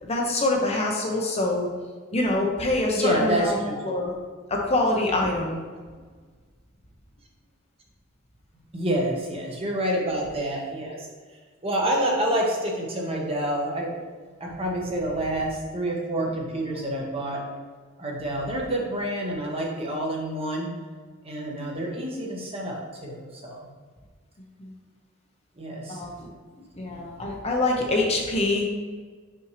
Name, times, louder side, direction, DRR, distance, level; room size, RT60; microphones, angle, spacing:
voice 1, 0.0-1.7 2.1-4.1 4.5-5.6 24.6-24.7 25.9-26.3 26.7-28.6, left 2 dB, 30° left, 0 dB, 0.8 m, -25 dB
voice 2, 3.0-3.7 8.7-11.1 11.6-13.9 14.4-17.4 18.0-20.7 21.2-23.6 25.6-26.0, right 1 dB, 30° right, -1 dB, 1.1 m, -28 dB
5.7 x 5.3 x 3.1 m, 1.5 s
head